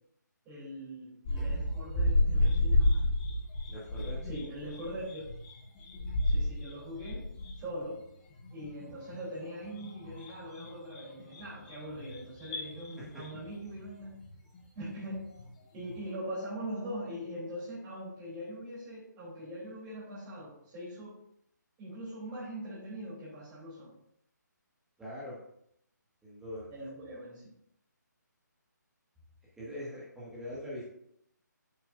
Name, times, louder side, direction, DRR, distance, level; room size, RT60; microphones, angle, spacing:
voice 1, 0.4-3.1 4.2-5.3 6.2-7.3 7.5-8.0 8.5-14.1 14.7-15.3 15.7-21.2 21.8-23.9 26.7-27.5, equal, 20° right, -8 dB, 3.3 m, -42 dB
sound 1, 1.2-15.5 15.8-16.0, left 1 dB, 25° left, 2.8 m, -32 dB
voice 2, 3.7-4.2 13.1-13.2 25.0-25.4 26.2-26.7 29.6-30.8, left 1 dB, 5° right, -8 dB, 1.8 m, -42 dB
8.4 x 7.3 x 2.6 m, 0.73 s
figure-of-eight pair, 150°, 10 cm